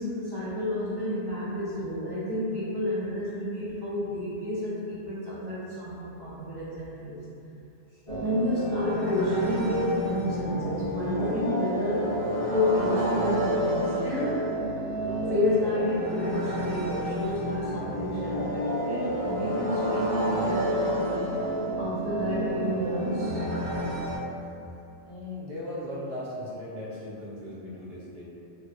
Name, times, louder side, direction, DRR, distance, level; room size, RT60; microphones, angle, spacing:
voice 1, 0.0-7.2 8.2-12.1 12.5-14.4 15.3-21.3 21.8-23.4, left 1 dB, 30° right, -12 dB, 0.5 m, -30 dB
sound 1, 8.1-24.2, equal, 45° left, 0.4 m, -30 dB
voice 2, 25.0-28.3, left 1 dB, 55° right, -8 dB, 0.8 m, -37 dB
2.3 x 2.2 x 2.6 m, 2.7 s
omnidirectional pair, 1.2 m